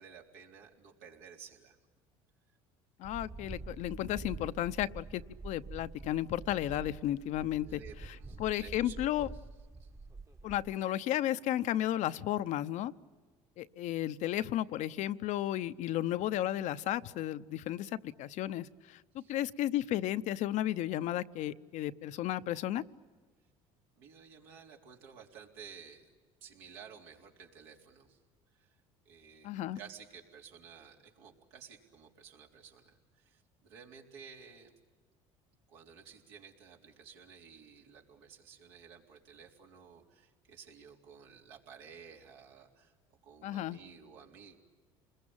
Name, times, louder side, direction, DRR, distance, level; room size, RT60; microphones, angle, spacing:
voice 1, 0.0-1.8 7.6-9.1 9.7-10.0 19.2-19.4 24.0-26.1 26.4-28.2 28.5-28.7 29.1-34.7 35.7-42.9 43.2-44.5, right 6 dB, 80° right, 0 dB, 3.9 m, -54 dB
voice 2, 3.0-7.8 8.4-9.3 10.4-12.9 13.6-17.9 18.2-22.8 29.4-29.8 43.4-43.8, left 13 dB, 60° left, 12 dB, 0.8 m, -33 dB
sound 1, 3.0-10.7, right 3 dB, 20° right, 1.3 m, -47 dB
28.5 x 21.5 x 8.9 m, 1.5 s
supercardioid pair, 90°, 14 cm